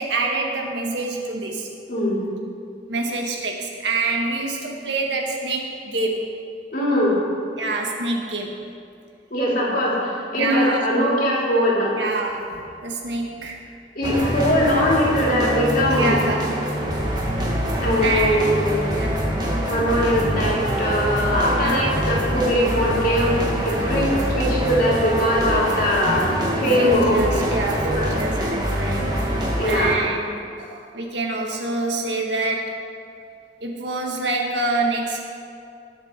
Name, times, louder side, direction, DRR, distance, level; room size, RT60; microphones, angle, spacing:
voice 1, 0.0-1.7 2.9-6.3 7.6-8.6 10.4-10.8 11.9-13.6 15.9-16.7 18.0-19.3 21.6-21.9 23.7-23.9 26.8-32.8 33.6-35.2, right 3 dB, 85° right, 0 dB, 1.9 m, -27 dB
voice 2, 1.9-2.2 6.7-7.2 9.3-11.9 13.9-16.2 17.8-18.9 19.7-23.4 23.6-26.3 26.5-27.4 27.9-28.2 29.6-29.9, equal, 55° left, -4 dB, 3.2 m, -21 dB
sound 1, 14.0-29.9, equal, 25° right, 1.9 m, -24 dB
19.5 x 7.3 x 4.5 m, 2.5 s
head